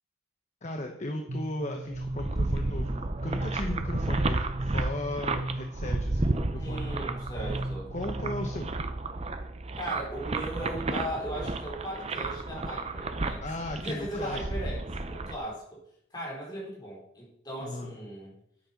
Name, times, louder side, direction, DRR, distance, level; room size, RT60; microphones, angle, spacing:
voice 1, 0.6-6.9 7.9-8.7 13.4-14.7 17.6-18.0, left 1 dB, 40° left, 3 dB, 1.1 m, -37 dB
sound 1, 1.3-8.8, right 1 dB, 55° right, 1.0 m, -37 dB
sound 2, 1.9-15.3, right 2 dB, 35° right, 0.7 m, -32 dB
voice 2, 6.5-7.9 9.8-13.4 13.8-14.8 15.1-15.8 16.1-18.4, right 1 dB, 20° left, -3 dB, 4.0 m, -37 dB
9.7 x 8.7 x 5.9 m, 0.76 s
head